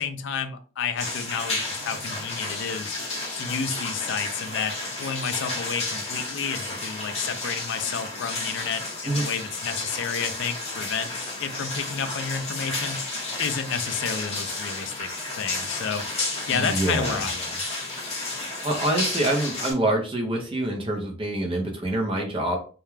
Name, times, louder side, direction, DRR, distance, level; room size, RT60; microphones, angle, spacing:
voice 1, 0.0-2.9 3.4-11.1 11.4-13.1 13.4-15.1 15.4-16.1 16.5-17.6, left 6 dB, 55° left, 9 dB, 0.3 m, -30 dB
sound 1, 1.0-19.7, left 2 dB, 30° left, 0.8 m, -32 dB
voice 2, 16.5-17.2 18.6-22.6, right 1 dB, 25° right, 2 dB, 0.5 m, -26 dB
2.3 x 2.2 x 3.1 m, 0.39 s
head